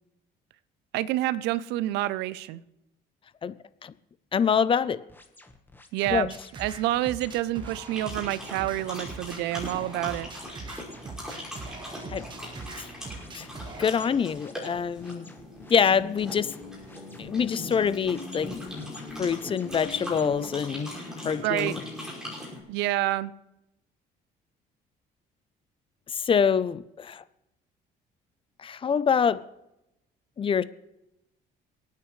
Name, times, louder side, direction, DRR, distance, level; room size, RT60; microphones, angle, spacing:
voice 1, 0.9-2.6 5.9-6.3 6.6-10.3 21.4-21.8 22.7-23.3, right 15 dB, 90° right, 0.5 m, -28 dB
voice 2, 4.3-5.0 6.1-6.3 12.1-12.3 12.8-12.9 13.3-13.5 13.8-15.3 15.7-16.6 17.2-18.7 19.2-20.9 21.2-21.8 26.1-27.2 28.6-29.5 30.4-30.6, left 7 dB, 30° left, 0.5 m, -25 dB
sound 1, 5.1-20.4, left 2 dB, 10° left, 1.3 m, -52 dB
sound 2, 6.0-14.0, right 3 dB, 30° right, 1.5 m, -42 dB
sound 3, 7.9-22.6, left 1 dB, 5° right, 5.5 m, -40 dB
28.0 x 9.3 x 3.2 m
cardioid pair, 110°, 17 cm